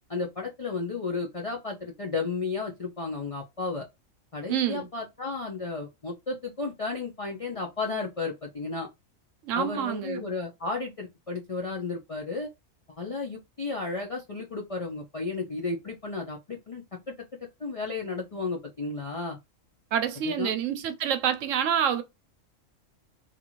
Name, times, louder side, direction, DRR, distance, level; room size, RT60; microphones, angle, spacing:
voice 1, 0.1-3.9 4.3-8.9 9.5-12.5 12.9-17.1 17.6-19.4 20.2-20.6, left 3 dB, 60° left, 0.3 m, -33 dB
voice 2, 4.5-4.9 9.4-10.3 19.9-22.0, right 9 dB, 75° right, 1.0 m, -27 dB
2.5 x 2.5 x 2.9 m
omnidirectional pair, 1.4 m